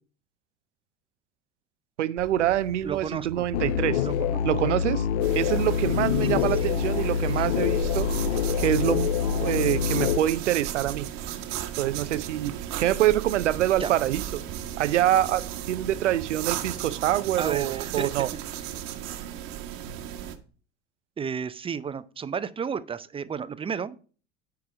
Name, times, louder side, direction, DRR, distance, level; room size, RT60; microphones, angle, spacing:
voice 1, 2.0-4.1 4.4-5.0 5.3-8.1 8.6-9.1 9.3-11.1 11.8-12.5 12.8-14.4 14.8-18.3, right 12 dB, 85° right, 0.5 m, -25 dB
sound 1, 2.2-18.2, right 8 dB, 40° right, 1.2 m, -43 dB
voice 2, 2.8-3.5 4.0-4.4 6.2-6.7 7.3-7.5 13.8-13.9 17.4-18.4 21.2-24.0, right 6 dB, 15° right, 0.5 m, -33 dB
sound 2, 3.5-10.2, left 9 dB, 70° left, 0.5 m, -26 dB
sound 3, 5.2-20.4, right 11 dB, 60° right, 1.2 m, -36 dB
9.5 x 4.7 x 5.0 m
hypercardioid pair, 75°, 35 cm